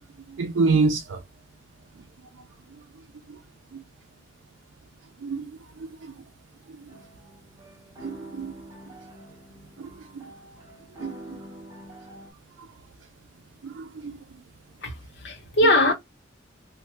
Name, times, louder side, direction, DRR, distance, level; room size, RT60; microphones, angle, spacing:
voice 1, 0.3-1.2 2.7-2.8 3.3-3.4 3.7-3.8 5.2-6.2 6.7-6.9 8.0-8.5 9.8-10.3 11.0-11.4 12.6-12.7 13.6-14.2, right 4 dB, 80° right, 0.4 m, -28 dB
sound 1, 6.9-12.3, right 1 dB, 20° right, 1.0 m, -45 dB
voice 2, 14.8-15.9, left 1 dB, 60° left, 0.8 m, -21 dB
3.1 x 2.1 x 3.0 m
head